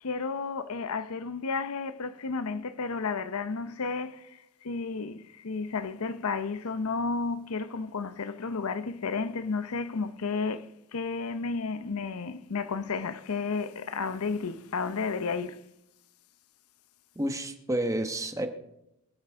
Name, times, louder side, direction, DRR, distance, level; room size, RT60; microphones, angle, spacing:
voice 1, 0.0-15.6, left 4 dB, 85° left, 0.7 m, -32 dB
voice 2, 17.2-18.5, right 1 dB, 15° right, 1.1 m, -30 dB
23.5 x 10.0 x 3.6 m
head